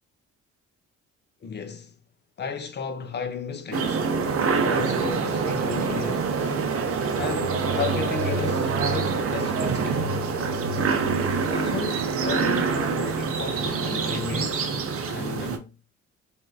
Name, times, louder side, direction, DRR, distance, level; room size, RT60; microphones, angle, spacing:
voice 1, 1.4-2.0 2.4-4.1 4.6-6.3 7.2-10.2 11.4-14.8 15.1-15.8, left 5 dB, 35° left, 0.6 m, -34 dB
sound 1, 3.7-15.6, right 5 dB, 50° right, 0.6 m, -26 dB
sound 2, 6.8-12.7, equal, 90° right, 0.9 m, -35 dB
3.5 x 2.6 x 2.3 m
cardioid pair, 90°, 30 cm